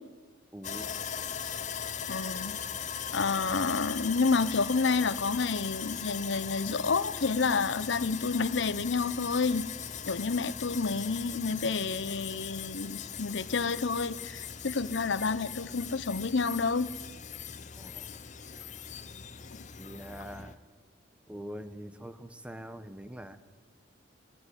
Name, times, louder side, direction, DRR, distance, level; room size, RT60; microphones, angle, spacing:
voice 1, 0.5-0.9 17.7-18.1 19.8-20.6 21.3-23.4, equal, 5° right, 10 dB, 1.0 m, -43 dB
Sawing, 0.6-20.5, left 8 dB, 40° left, 0.8 m, -39 dB
voice 2, 2.1-2.6 3.1-9.7 10.0-16.9, left 4 dB, 70° left, 15 dB, 0.8 m, -29 dB
20.0 x 16.5 x 10.0 m, 1.4 s
head